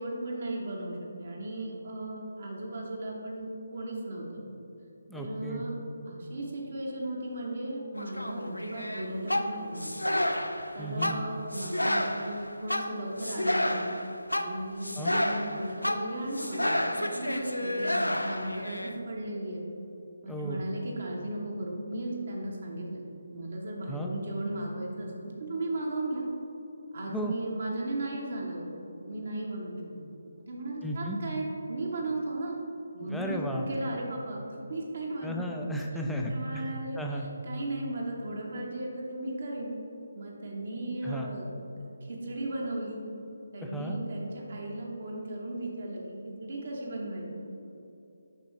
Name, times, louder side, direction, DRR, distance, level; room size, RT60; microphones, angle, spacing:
voice 1, 0.0-4.4 5.1-5.7 6.1-9.9 10.7-13.9 14.4-19.6 20.2-23.0 23.3-26.2 26.9-30.1 30.4-32.6 32.9-35.6 36.2-37.0 37.5-39.7 40.1-41.5 41.8-43.0 43.5-47.3, right 1 dB, 55° right, -2 dB, 1.0 m, -36 dB
voice 2, 5.1-5.6 10.8-11.2 15.0-15.1 20.2-20.6 23.9-24.1 27.1-27.3 30.8-31.2 33.0-33.7 35.2-36.6 37.0-37.3 41.0-41.3 43.6-44.0, equal, 5° left, 0 dB, 0.4 m, -34 dB
sound 1, 8.0-18.9, left 1 dB, 85° left, 0.4 m, -30 dB
6.6 x 5.3 x 3.1 m, 2.8 s
figure-of-eight pair, 150°, 0 cm